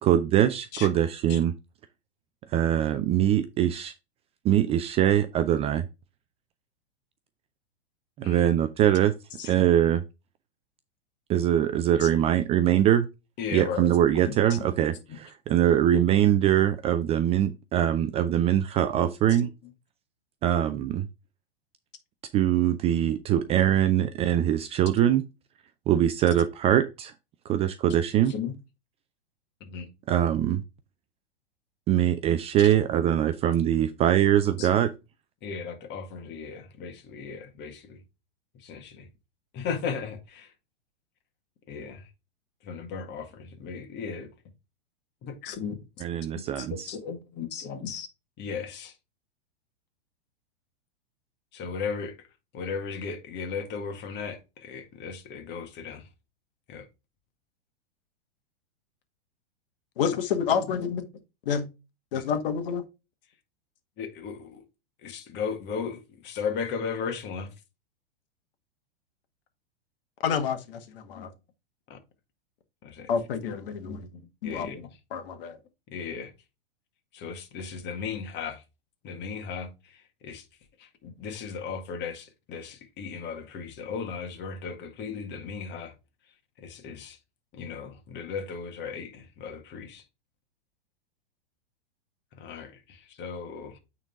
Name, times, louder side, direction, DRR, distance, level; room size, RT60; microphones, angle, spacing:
voice 1, 0.0-1.5 2.5-3.9 4.4-5.8 8.2-9.1 9.5-10.0 11.3-13.1 13.5-19.5 20.4-21.1 22.3-25.2 25.9-27.1 27.5-28.3 30.1-30.6 31.9-34.9 46.0-46.9, right 11 dB, 20° right, 0.4 m, -23 dB
voice 2, 13.4-13.9 14.3-14.6 19.4-19.5 28.3-28.5 29.7-29.9 32.6-32.7 34.6-34.7 35.4-38.0 38.6-39.1 39.5-40.5 41.7-42.0 42.6-44.3 45.2-45.8 46.6-48.1 48.4-48.9 51.5-52.2 52.5-56.0 56.7-56.9 60.9-61.0 62.1-62.2 64.0-64.6 65.0-67.5 71.1-71.3 71.9-72.0 72.8-73.1 73.8-74.9 75.9-76.3 77.1-78.6 79.0-80.0 80.2-80.4 80.8-85.9 86.6-87.2 87.5-90.0 92.4-93.8, left 6 dB, 35° left, 1.9 m, -36 dB
voice 3, 60.0-60.9 61.4-61.7 62.1-62.8 70.2-71.3 73.1-74.1 74.4-74.7 75.1-75.6, left 7 dB, 60° left, 1.7 m, -28 dB
9.0 x 4.0 x 3.6 m
hypercardioid pair, 110°, 31 cm